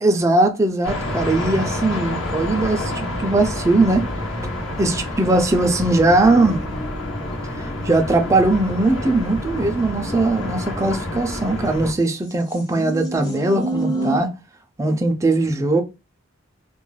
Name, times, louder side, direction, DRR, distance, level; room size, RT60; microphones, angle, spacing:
voice 1, 0.0-4.1 4.8-6.6 7.6-14.3 14.8-15.8, right 2 dB, 15° right, 0.3 m, -19 dB
sound 1, 0.8-11.9, left 1 dB, 70° left, 1.0 m, -28 dB
sound 2, 5.9-11.7 12.3-14.2, right 1 dB, 20° left, 0.6 m, -32 dB
2.3 x 2.2 x 3.0 m
head